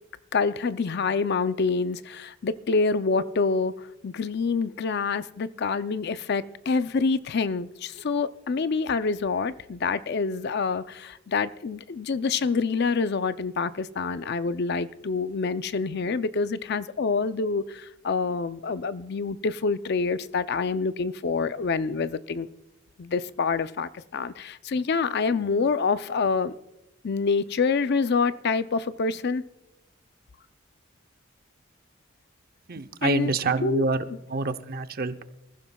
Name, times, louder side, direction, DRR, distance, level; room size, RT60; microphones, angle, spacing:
voice 1, 0.3-22.5 23.0-26.5 27.0-29.4 33.0-33.3 33.6-33.8, left 4 dB, 55° left, 0.5 m, -26 dB
voice 2, 32.7-35.2, right 3 dB, 50° right, 0.7 m, -27 dB
26.5 x 15.0 x 2.3 m
head